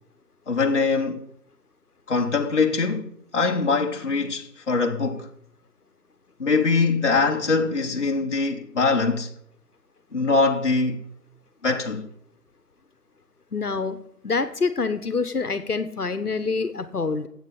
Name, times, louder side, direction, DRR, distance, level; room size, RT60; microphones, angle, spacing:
voice 1, 0.5-1.3 2.1-5.3 6.4-9.3 10.1-11.0 11.6-12.1, left 4 dB, 45° left, 1.2 m, -23 dB
voice 2, 13.5-17.3, left 4 dB, 65° left, 1.3 m, -26 dB
10.5 x 8.3 x 7.1 m
figure-of-eight pair, 165°, 48 cm